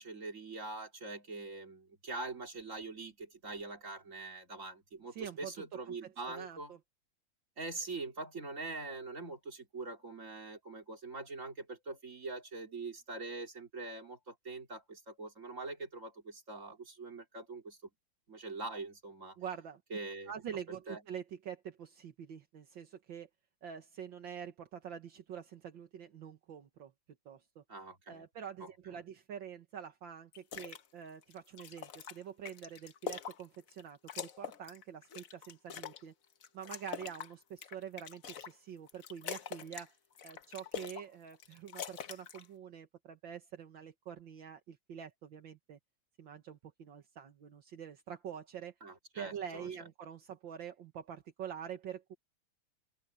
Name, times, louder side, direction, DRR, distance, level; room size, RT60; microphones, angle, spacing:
voice 1, 0.0-6.7 7.6-17.8 18.3-19.4 19.9-20.3 20.9-21.0 27.7-28.2 28.9-29.0 48.8-49.7, right 3 dB, 40° right, 3.9 m, -43 dB
voice 2, 5.1-5.5 5.9-6.8 19.4-20.0 20.3-23.3 23.6-26.9 27.3-27.6 28.1-36.1 36.5-40.0 40.2-45.8 46.2-48.7 49.2-52.2, right 8 dB, 70° right, 2.1 m, -46 dB
sound 1, 30.3-30.8 31.2-33.8 34.1-36.0 36.4-38.5 38.9-39.9 40.2-41.1 41.3-42.5, left 8 dB, 50° left, 1.3 m, -44 dB
open air
omnidirectional pair, 2.2 m